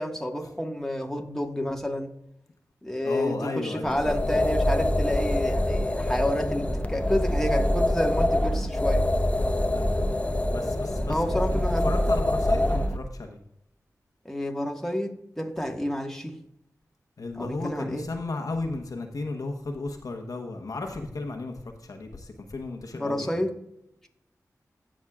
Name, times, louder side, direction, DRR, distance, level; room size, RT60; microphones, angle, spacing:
voice 1, 0.0-2.1 2.8-9.0 11.1-11.9 14.2-16.3 17.4-18.1 22.9-23.6, left 1 dB, 5° left, 1 dB, 1.6 m, -29 dB
voice 2, 3.0-4.1 9.7-9.9 10.5-13.4 17.2-23.4, left 3 dB, 70° left, 3 dB, 1.1 m, -34 dB
sound 1, 3.8-13.0, left 1 dB, 20° left, 0.7 m, -25 dB
16.0 x 6.3 x 2.4 m, 0.79 s
cardioid pair, 45°, 6 cm